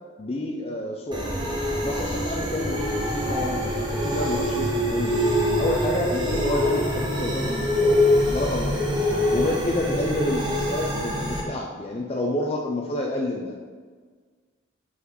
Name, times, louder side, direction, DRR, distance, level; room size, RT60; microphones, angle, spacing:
voice 1, 0.2-1.5 1.8-5.2 5.6-7.9 8.3-8.8 9.3-13.5, left 1 dB, 30° left, 0 dB, 0.5 m, -29 dB
sound 1, 1.1-11.4, left 1 dB, 25° right, 1.0 m, -24 dB
5.7 x 4.1 x 4.7 m, 1.5 s
head